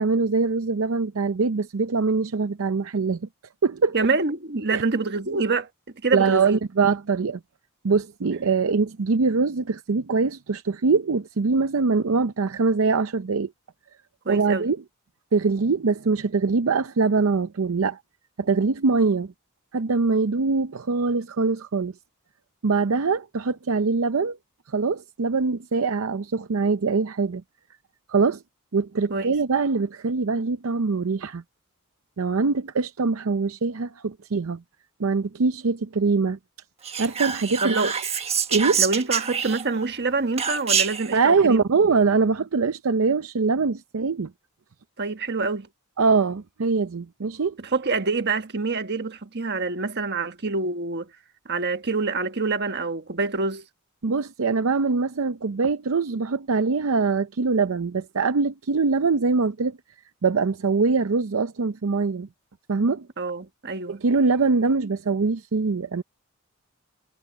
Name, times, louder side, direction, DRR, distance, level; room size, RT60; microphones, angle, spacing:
voice 1, 0.0-3.3 3.6-3.9 4.7-4.8 6.1-7.4 7.8-13.5 14.3-14.8 15.3-18.0 18.4-19.3 19.7-21.9 22.6-24.4 24.7-27.4 28.1-28.4 28.7-31.4 32.2-34.6 35.0-36.4 37.0-37.8 38.5-38.8 41.1-44.3 46.0-47.6 54.0-59.8 60.2-62.3 62.7-63.1 63.9-66.0, right 4 dB, 75° right, 0.6 m, -23 dB
voice 2, 3.9-5.7 6.0-6.6 14.2-14.7 29.1-29.3 37.6-37.9 38.8-41.6 45.0-45.7 47.6-51.1 51.4-53.7 63.2-64.0, right 3 dB, 50° right, 1.4 m, -26 dB
Whispering, 36.8-39.8 40.4-41.1, right 7 dB, 30° right, 1.4 m, -26 dB
head